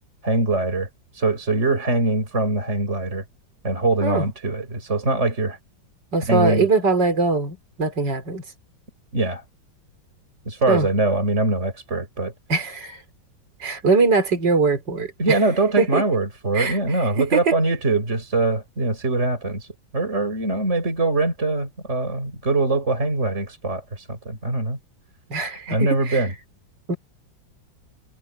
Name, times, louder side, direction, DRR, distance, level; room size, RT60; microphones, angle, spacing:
voice 1, 0.2-0.9 1.1-3.2 3.6-5.6 6.3-6.7 9.1-9.4 10.5-12.3 15.2-19.7 19.9-24.8 25.7-26.3, right 2 dB, 35° right, 5.5 m, -22 dB
voice 2, 6.1-8.4 10.7-10.9 12.5-13.0 13.6-15.4 15.8-16.0 16.5-17.5 25.3-26.3 26.9-27.0, right 3 dB, 65° right, 4.6 m, -22 dB
omnidirectional pair, 2.0 m